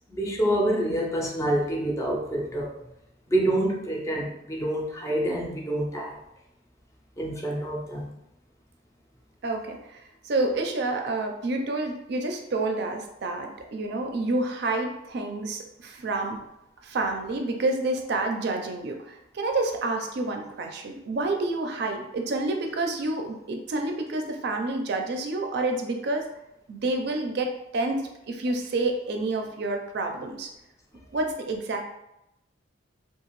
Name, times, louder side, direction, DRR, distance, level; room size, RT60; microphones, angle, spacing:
voice 1, 0.1-2.7 3.3-6.2 7.2-8.1, right 1 dB, 15° left, -1 dB, 0.3 m, -27 dB
voice 2, 9.4-10.0 10.2-16.4 16.8-26.3 26.7-30.5 31.1-31.8, right 2 dB, 55° right, 3 dB, 0.4 m, -29 dB
2.8 x 2.4 x 3.0 m, 0.87 s
head